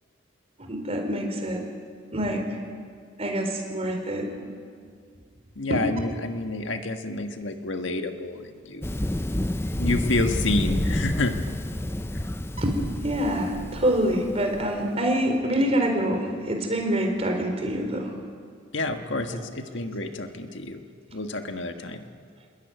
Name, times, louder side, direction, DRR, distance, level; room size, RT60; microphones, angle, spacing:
voice 1, 0.6-1.6 2.1-2.4 3.2-4.3 5.7-5.8 12.6-18.1 19.3-19.5, right 1 dB, 30° right, 3 dB, 4.4 m, -26 dB
voice 2, 5.6-8.8 9.8-11.3 18.7-20.8 21.1-22.0, left 2 dB, 70° left, 5 dB, 1.7 m, -29 dB
Thunder, 8.8-14.7, left 1 dB, 10° left, 0.6 m, -29 dB
27.5 x 21.5 x 9.4 m, 2.1 s
head